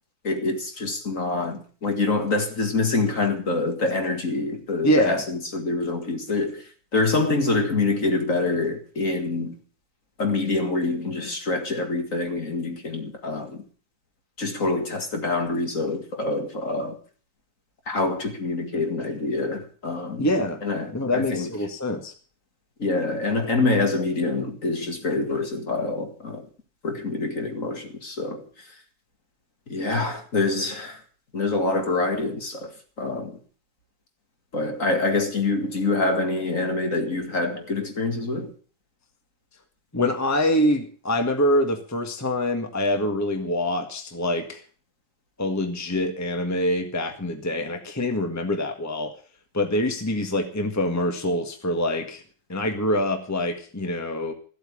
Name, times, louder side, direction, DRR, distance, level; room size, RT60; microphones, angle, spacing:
voice 1, 0.2-6.6 6.9-9.6 10.2-13.6 14.4-17.0 17.9-20.3 20.6-21.5 22.8-26.5 26.8-28.4 29.7-31.0 31.3-33.4 34.5-38.5, left 3 dB, 40° left, 2.3 m, -26 dB
voice 2, 4.8-5.2 20.2-20.6 20.9-22.1 39.9-44.6 45.4-49.1 49.5-52.2 52.5-54.3, left 1 dB, 10° left, 1.6 m, -25 dB
14.5 x 8.3 x 8.6 m
omnidirectional pair, 2.1 m